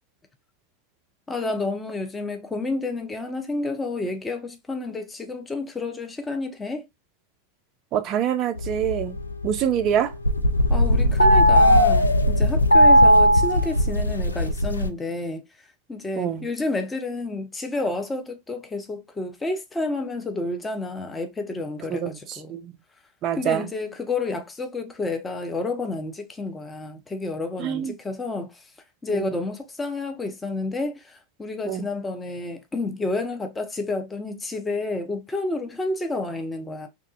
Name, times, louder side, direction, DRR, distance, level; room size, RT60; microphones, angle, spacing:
voice 1, 1.3-6.8 10.7-15.4 15.9-22.6 23.3-28.6 29.0-36.9, left 2 dB, 15° left, 0.6 m, -30 dB
voice 2, 7.9-9.2 9.4-10.1 16.2-16.4 21.9-22.1 22.5-22.7 23.2-23.7 27.6-27.9 29.1-29.3 31.7-31.9, right 9 dB, 40° right, 0.3 m, -25 dB
sound 1, 8.6-9.9 10.1-14.9, equal, 90° left, 0.3 m, -17 dB
2.8 x 2.4 x 2.3 m
figure-of-eight pair, 90°, 0 cm